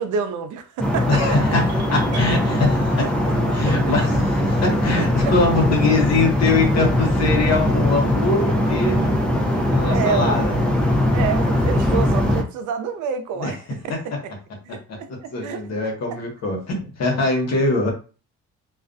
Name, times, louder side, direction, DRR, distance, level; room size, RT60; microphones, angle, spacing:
voice 1, 0.0-1.2 3.0-3.8 5.0-5.6 9.9-10.4 11.1-13.6 13.8-14.3 14.6-15.6, right 7 dB, 75° right, 0.5 m, -29 dB
sound 1, 0.8-12.4, left 1 dB, 5° left, 0.5 m, -20 dB
voice 2, 1.1-3.1 3.5-9.2 9.7-10.6 13.4-13.6 13.9-14.0 14.9-17.9, left 3 dB, 60° left, 1.0 m, -22 dB
sound 2, 1.7-3.7, right 2 dB, 60° right, 1.0 m, -39 dB
2.4 x 2.1 x 2.5 m
cardioid pair, 90°, 30 cm